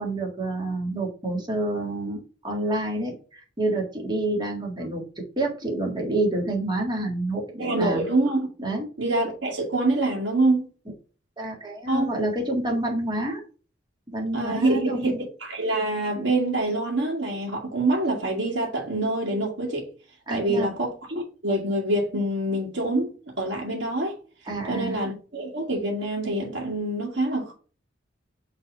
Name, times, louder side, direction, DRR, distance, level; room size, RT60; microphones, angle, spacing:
voice 1, 0.0-8.0 8.6-8.9 11.4-13.4 14.1-15.2 20.3-20.7 24.5-25.0, right 2 dB, 25° right, 1.9 m, -28 dB
voice 2, 7.6-8.5 9.0-10.7 11.9-12.1 14.3-15.1 15.4-19.9 20.3-23.1 23.4-24.1 24.7-27.5, right 2 dB, 65° right, 2.1 m, -25 dB
6.1 x 3.4 x 5.3 m
head